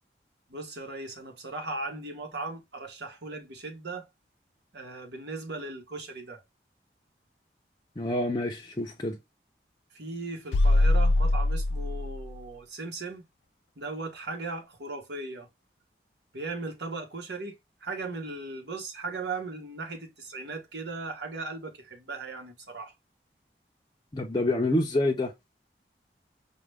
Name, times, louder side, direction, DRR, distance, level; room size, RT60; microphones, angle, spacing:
voice 1, 0.5-4.1 4.7-6.4 9.9-13.2 13.8-15.5 16.3-22.9, right 3 dB, 80° right, 1.2 m, -37 dB
voice 2, 8.0-9.2 24.1-25.3, left 1 dB, 25° left, 0.5 m, -27 dB
sound 1, 10.5-12.4, left 2 dB, 90° left, 0.4 m, -23 dB
4.8 x 2.2 x 3.4 m
head